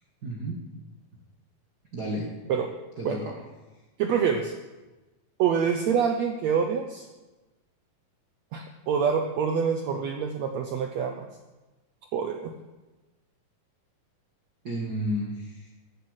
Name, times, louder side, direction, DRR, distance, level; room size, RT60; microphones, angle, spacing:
voice 1, 0.2-0.6 1.9-2.3 3.0-3.4 14.6-15.7, equal, 45° right, -2 dB, 1.4 m, -32 dB
voice 2, 4.0-4.5 5.4-7.1 8.5-11.3 12.1-12.5, right 7 dB, 75° right, 4 dB, 1.6 m, -26 dB
13.0 x 8.0 x 8.1 m, 1.1 s
omnidirectional pair, 4.0 m